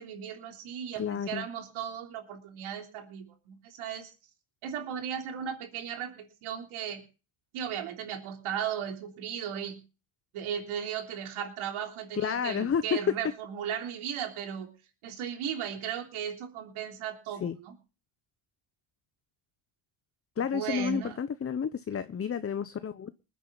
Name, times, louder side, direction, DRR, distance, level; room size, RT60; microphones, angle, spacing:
voice 1, 0.0-4.1 4.6-7.0 7.5-9.8 10.3-14.7 15.0-17.7 20.5-21.2, right 8 dB, 80° right, 3.4 m, -36 dB
voice 2, 1.0-1.5 12.1-13.0 17.4-17.6 20.4-23.1, left 7 dB, 30° left, 0.8 m, -31 dB
20.5 x 9.5 x 3.9 m
cardioid pair, 85°, 49 cm